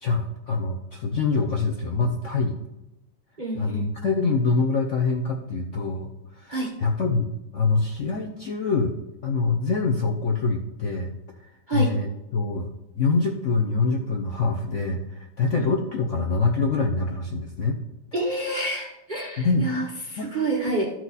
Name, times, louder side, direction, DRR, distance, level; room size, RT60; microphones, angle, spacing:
voice 1, 0.0-2.6 3.5-6.1 6.4-8.9 9.2-11.1 11.7-12.7 13.0-17.8 19.4-19.7 20.2-20.3, left 4 dB, 55° left, 1 dB, 0.8 m, -25 dB
voice 2, 3.4-3.9 6.5-6.7 11.7-11.9 15.6-15.7 18.1-20.9, right 2 dB, 35° right, -2 dB, 0.8 m, -28 dB
13.0 x 4.6 x 4.1 m, 0.92 s
omnidirectional pair, 2.0 m